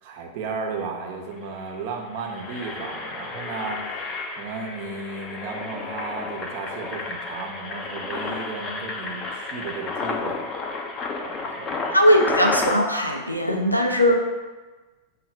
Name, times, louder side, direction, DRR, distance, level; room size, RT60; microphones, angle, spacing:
voice 1, 0.0-10.5 11.2-12.0, right 4 dB, 45° right, 1 dB, 0.8 m, -34 dB
Engine, 1.0-1.1 1.4-1.6 2.1-12.8, left 4 dB, 30° left, 0.5 m, -31 dB
voice 2, 11.9-14.2, equal, 85° left, 2 dB, 0.5 m, -19 dB
6.3 x 2.4 x 3.2 m, 1.2 s
figure-of-eight pair, 90°, 0 cm